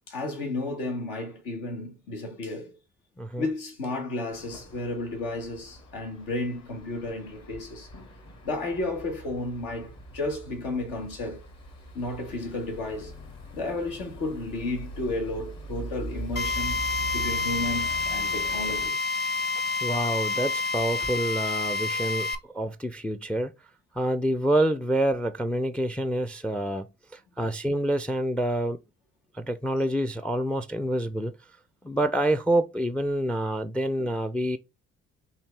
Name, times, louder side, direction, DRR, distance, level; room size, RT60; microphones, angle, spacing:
voice 1, 0.1-2.7 3.4-7.9 8.4-11.4 11.9-13.1 13.5-16.8 17.1-19.1, left 2 dB, 80° left, 1.4 m, -32 dB
sound 1, 4.3-18.9, right 1 dB, 50° left, 1.7 m, -42 dB
Drill, 16.4-22.4, left 4 dB, 30° left, 0.9 m, -28 dB
voice 2, 19.8-23.5 23.9-28.8 29.3-31.3 31.8-34.6, right 1 dB, 5° left, 0.4 m, -27 dB
4.4 x 2.8 x 3.2 m
hypercardioid pair, 50°, 33 cm